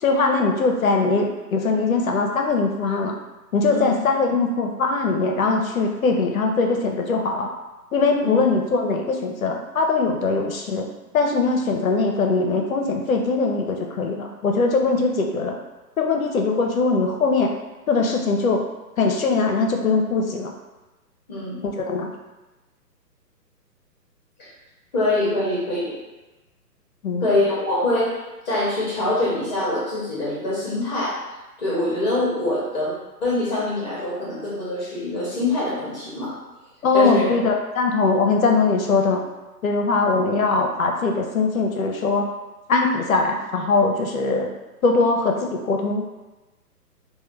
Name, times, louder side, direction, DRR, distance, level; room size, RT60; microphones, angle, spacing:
voice 1, 0.0-3.1 3.5-7.5 7.9-10.9 11.1-15.6 16.0-17.5 17.9-18.7 19.0-20.5 21.6-22.1 27.0-27.3 36.8-39.2 39.6-42.3 42.7-44.5 44.8-46.0, left 3 dB, 55° left, 2 dB, 0.6 m, -21 dB
voice 2, 21.3-21.6 24.4-24.5 24.9-25.9 27.2-28.1 28.5-31.2 31.6-32.9 33.2-36.4 36.9-37.3, left 2 dB, 25° left, -7 dB, 0.8 m, -24 dB
3.1 x 2.2 x 3.0 m, 1.1 s
figure-of-eight pair, 135°, 49 cm